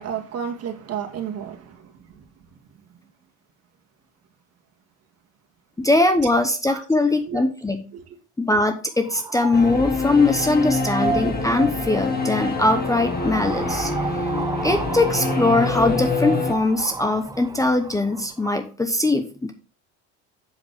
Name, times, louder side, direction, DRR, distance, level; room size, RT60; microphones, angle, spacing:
voice 1, 0.0-1.8 6.7-6.8 7.1-7.4 7.9-8.0, right 8 dB, 45° right, 2.0 m, -32 dB
voice 2, 5.8-7.8 8.4-13.9 14.6-19.5, left 2 dB, 10° left, 0.8 m, -21 dB
sound 1, 8.9-18.7, right 5 dB, 10° right, 0.4 m, -33 dB
Singing / Musical instrument, 9.5-16.5, left 3 dB, 25° left, 1.8 m, -26 dB
7.8 x 7.1 x 3.6 m
supercardioid pair, 105°, 34 cm